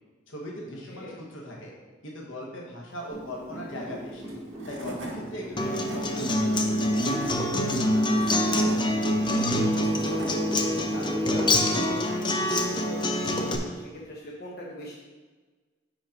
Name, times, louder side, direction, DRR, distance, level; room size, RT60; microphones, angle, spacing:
voice 1, 0.3-1.1 1.4-1.7 2.0-4.3 4.7-6.8, equal, 80° left, -2 dB, 1.2 m, -39 dB
voice 2, 0.9-1.2 7.7-12.4 12.7-14.9, equal, 50° left, -4 dB, 0.9 m, -41 dB
sound 1, 3.1-12.6, equal, 15° right, 1.3 m, -39 dB
Tools / Wood, 4.2-4.3 4.6-5.2 5.6-6.0 6.7-7.3 7.9-8.8 9.5-10.3, right 1 dB, 70° right, 1.3 m, -39 dB
Acoustic guitar, 5.6-13.6, left 1 dB, 25° left, 0.6 m, -25 dB
5.5 x 5.1 x 5.1 m, 1.3 s
head